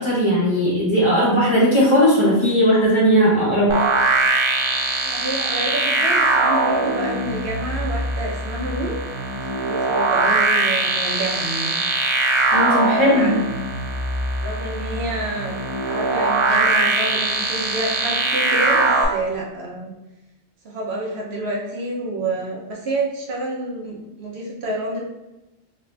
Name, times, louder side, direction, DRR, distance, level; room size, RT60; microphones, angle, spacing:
voice 1, 0.0-3.7 12.5-13.3, equal, 30° left, -6 dB, 0.8 m, -17 dB
sound 1, 3.7-19.1, right 3 dB, 45° right, 0.4 m, -21 dB
voice 2, 5.0-9.0 9.5-11.8 12.9-13.5 14.4-19.9 20.6-25.0, right 2 dB, 65° right, -3 dB, 1.0 m, -28 dB
2.9 x 2.6 x 3.2 m, 1.0 s
omnidirectional pair, 1.2 m